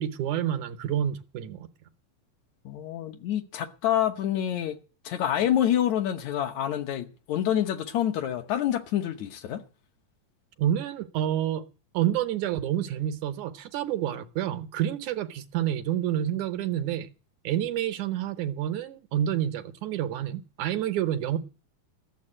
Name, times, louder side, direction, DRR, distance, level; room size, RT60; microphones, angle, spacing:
voice 1, 0.0-1.7 10.6-11.6 11.9-17.1 17.4-21.4, right 11 dB, 75° right, 2.2 m, -28 dB
voice 2, 2.7-4.8 5.0-9.6, left 11 dB, 65° left, 2.2 m, -27 dB
14.5 x 7.2 x 9.9 m
omnidirectional pair, 3.7 m